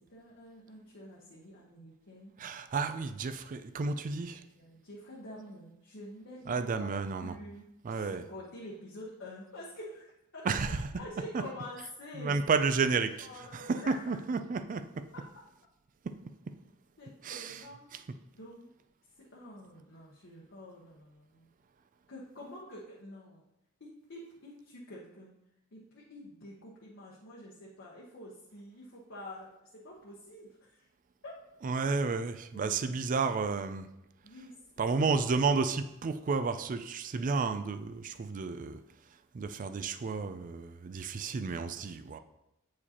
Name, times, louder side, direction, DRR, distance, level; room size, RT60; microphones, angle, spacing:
voice 1, 0.1-2.3 3.0-3.2 3.8-6.9 7.2-10.5 11.0-12.4 13.2-14.2 17.0-17.9 18.3-18.7 19.3-21.5 22.1-23.5 23.8-25.3 25.7-30.9 31.2-31.3 32.5-32.8 34.2-34.5, left 1 dB, 55° left, -5 dB, 1.0 m, -47 dB
voice 2, 2.4-4.4 6.5-7.3 7.8-8.2 10.5-11.0 11.3-11.4 12.2-13.3 13.5-15.1 17.2-17.6 17.9-18.0 31.6-33.9 34.8-38.8 39.3-42.2, right 4 dB, 35° right, 10 dB, 0.3 m, -31 dB
8.2 x 4.8 x 2.9 m, 0.86 s
head